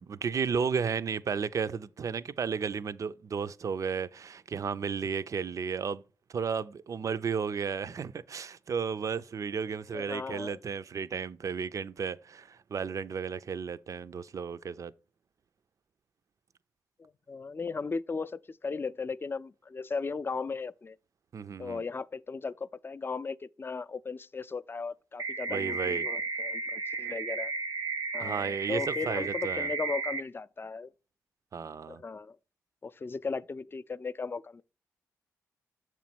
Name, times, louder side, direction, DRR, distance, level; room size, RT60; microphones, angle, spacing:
voice 1, 0.0-6.0 6.3-14.9 21.3-21.8 25.5-26.1 28.2-29.7 31.5-32.0, right 6 dB, 55° right, 0.4 m, -33 dB
voice 2, 9.9-10.6 17.0-21.0 21.6-27.5 28.1-30.9 31.9-32.4 32.8-34.6, left 4 dB, 35° left, 0.4 m, -37 dB
sound 1, 25.2-30.2, right 4 dB, 85° right, 0.8 m, -34 dB
6.7 x 3.1 x 5.9 m
supercardioid pair, 45°, 7 cm